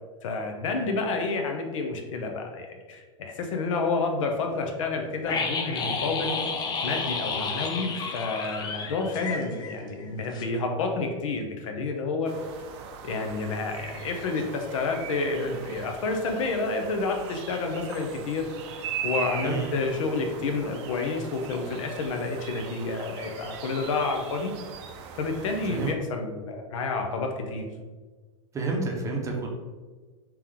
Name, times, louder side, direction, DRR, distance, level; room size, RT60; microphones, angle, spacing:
voice 1, 0.2-6.4 6.8-12.3 13.0-18.5 19.0-24.5 25.1-27.7, left 3 dB, 70° left, 3 dB, 0.7 m, -29 dB
sound 1, 5.3-10.1 10.3-10.4, left 4 dB, 25° left, 0.5 m, -31 dB
sound 2, 12.2-25.9, right 7 dB, 55° right, 0.5 m, -40 dB
voice 2, 19.4-19.8 25.7-25.9 28.5-29.5, right 3 dB, 20° right, 0 dB, 0.7 m, -29 dB
3.4 x 3.0 x 3.5 m, 1.4 s
hypercardioid pair, 115°, 17 cm